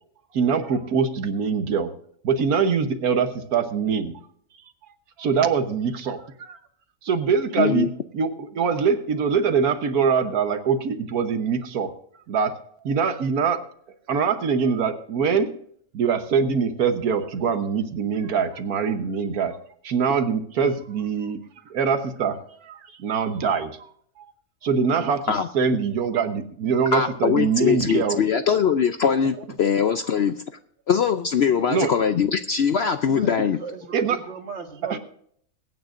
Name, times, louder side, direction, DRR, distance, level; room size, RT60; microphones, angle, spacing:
voice 1, 0.3-1.9 2.2-4.2 5.2-6.6 7.0-11.9 12.3-12.6 12.8-13.6 14.1-15.5 15.9-19.6 19.8-21.4 21.7-23.7 24.2-24.3 24.6-28.2 31.7-31.9 33.9-34.2 34.8-35.0, right 6 dB, 80° right, 1.5 m, -23 dB
voice 2, 7.6-7.9 25.3-25.5 26.9-30.4 30.9-33.6, left 7 dB, 60° left, 0.7 m, -22 dB
voice 3, 33.1-35.0, right 4 dB, 50° right, 1.8 m, -37 dB
23.0 x 9.2 x 2.5 m
omnidirectional pair, 1.6 m